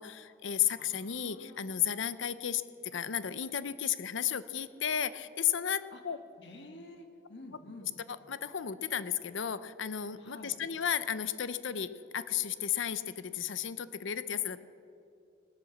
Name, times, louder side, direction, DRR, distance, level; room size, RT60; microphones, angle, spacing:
voice 1, 0.0-6.2 8.3-14.6, left 9 dB, 75° left, 14 dB, 0.6 m, -33 dB
voice 2, 0.8-1.6 2.9-3.0 5.9-6.0 6.4-7.9 10.2-10.6, left 2 dB, 60° left, 5 dB, 1.7 m, -50 dB
18.0 x 11.5 x 7.1 m, 2.5 s
head